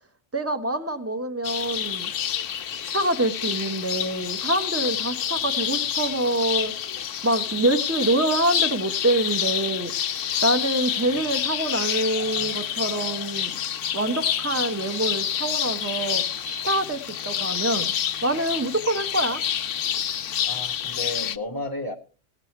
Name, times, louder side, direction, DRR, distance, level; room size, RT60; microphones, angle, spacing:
voice 1, 0.3-2.1 2.9-6.7 7.2-9.9 10.4-13.5 13.9-16.2 16.6-17.0 17.2-17.9 18.2-19.4, right 1 dB, 10° right, 1.2 m, -25 dB
sound 1, 1.4-21.4, left 9 dB, 80° left, 1.1 m, -28 dB
voice 2, 20.4-21.9, left 2 dB, 20° left, 1.0 m, -32 dB
18.5 x 7.4 x 4.6 m
omnidirectional pair, 1.3 m